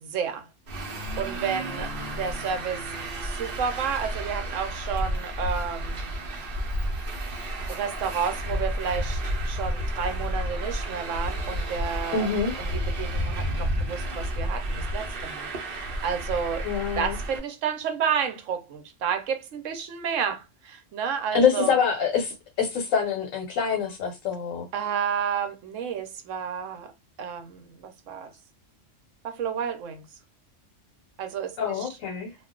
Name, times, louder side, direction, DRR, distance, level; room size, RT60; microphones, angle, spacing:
voice 1, 0.0-0.5 1.2-2.9 3.2-6.1 7.7-12.3 12.6-16.7 17.0-21.7 24.7-26.9 27.2-28.3 29.2-30.0 31.2-31.9, right 7 dB, 75° right, 1.0 m, -31 dB
Traffic noise roadway noise, 0.7-17.4, equal, 50° right, 0.8 m, -31 dB
voice 2, 12.1-12.5 16.6-17.2 21.3-24.7 31.6-32.3, left 6 dB, 85° left, 1.1 m, -25 dB
2.4 x 2.3 x 3.6 m
omnidirectional pair, 1.3 m